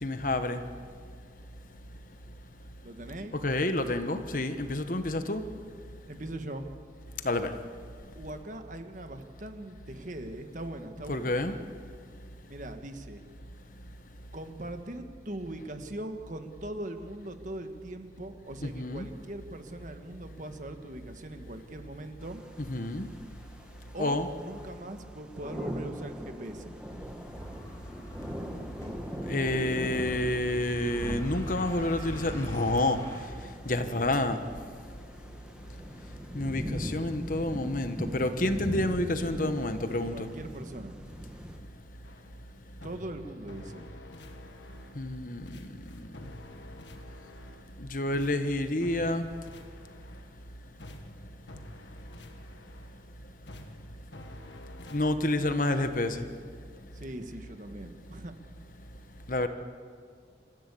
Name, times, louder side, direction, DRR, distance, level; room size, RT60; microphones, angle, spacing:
voice 1, 0.0-0.6 3.4-5.4 7.2-7.5 11.1-11.6 18.6-19.1 22.6-23.1 24.0-24.3 29.3-33.0 33.7-34.4 36.3-40.3 45.0-45.7 47.9-49.3 54.9-56.3 59.3-59.5, left 1 dB, 45° left, 9 dB, 1.2 m, -29 dB
voice 2, 2.8-3.4 6.1-6.7 8.1-11.3 12.5-13.2 14.3-22.4 23.9-26.8 40.1-41.0 42.8-43.9 56.9-58.3, right 1 dB, 45° right, 7 dB, 1.5 m, -41 dB
sound 1, 22.2-41.6, equal, 5° right, 1.6 m, -41 dB
sound 2, 27.3-33.2, equal, 15° left, 3.6 m, -41 dB
sound 3, 42.0-42.4 42.8-45.2 45.5-47.8 48.1-50.4 50.8-53.1 53.5-55.1, left 1 dB, 85° left, 1.8 m, -50 dB
26.5 x 15.0 x 8.4 m, 2.1 s
head